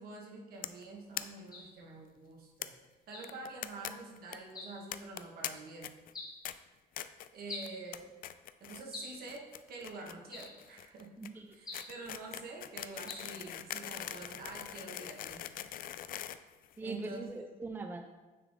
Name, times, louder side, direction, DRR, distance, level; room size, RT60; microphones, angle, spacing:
voice 1, 0.0-2.7 3.1-5.9 7.3-8.1 8.6-11.1 11.5-15.5 16.8-17.2, right 3 dB, 65° right, -1 dB, 1.6 m, -47 dB
sound 1, 0.6-0.8 1.1-1.2 1.5-1.6 1.8-1.9 2.6-2.7 3.2-3.9 4.2-4.4 4.9-5.5 5.8-6.1 6.4-6.5 7.0-7.3 7.6-8.0 8.2-8.8 9.1-17.2, left 12 dB, 60° left, 0.4 m, -42 dB
sound 2, 1.5-1.8 3.1-3.4 4.5-4.8 6.1-6.4 7.5-7.8 8.9-9.3 10.3-10.6 11.7-12.0 13.1-13.4, left 3 dB, 25° left, 1.9 m, -45 dB
voice 2, 11.2-11.6 16.8-18.0, right 3 dB, 10° right, 5 dB, 0.4 m, -41 dB
9.4 x 3.6 x 3.7 m, 1.2 s
cardioid pair, 110°, 17 cm